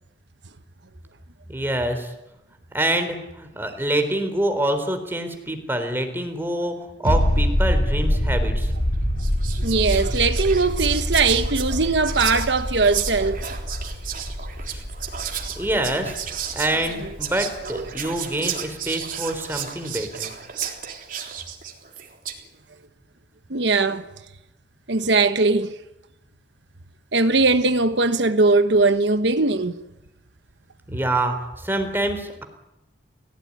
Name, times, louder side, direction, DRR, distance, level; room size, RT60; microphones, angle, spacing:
voice 1, 1.5-2.1 2.7-8.7 14.7-14.8 15.6-20.3 30.9-32.4, right 1 dB, 10° right, 3.9 m, -26 dB
sound 1, 7.0-18.4 18.7-18.8, equal, 55° left, 7.5 m, -26 dB
Whispering, 8.6-8.8 9.2-22.5, right 8 dB, 50° right, 3.6 m, -33 dB
voice 2, 9.6-13.4 17.7-17.8 18.4-18.5 23.5-24.0 24.9-25.7 27.1-29.7, right 3 dB, 70° right, 1.2 m, -20 dB
30.0 x 17.5 x 9.8 m
head